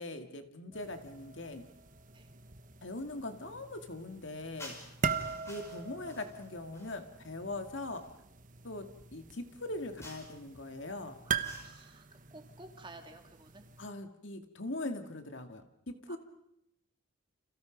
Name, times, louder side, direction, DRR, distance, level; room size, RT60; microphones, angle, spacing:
voice 1, 0.0-1.6 2.8-4.7 5.5-8.1 8.6-11.2 13.8-16.2, left 2 dB, 65° left, 7 dB, 2.2 m, -41 dB
sound 1, 0.7-13.9, right 5 dB, 40° right, 1.3 m, -42 dB
sound 2, 4.6-7.1 7.9-8.1 10.0-10.5 11.4-12.0, left 1 dB, 15° left, 5.4 m, -52 dB
voice 2, 11.2-13.7 16.1-16.2, right 2 dB, 25° right, 5 dB, 2.7 m, -53 dB
30.0 x 28.0 x 5.3 m, 0.77 s
head